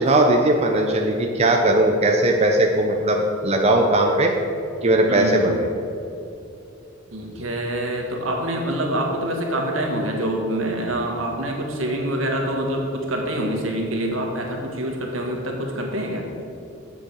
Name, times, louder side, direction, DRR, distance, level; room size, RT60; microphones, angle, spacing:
voice 1, 0.0-4.3 4.8-5.7, right 1 dB, 30° right, 2 dB, 0.7 m, -19 dB
voice 2, 5.1-5.5 7.1-16.2, right 1 dB, 75° right, 1 dB, 1.8 m, -26 dB
7.9 x 6.7 x 7.9 m, 2.7 s
head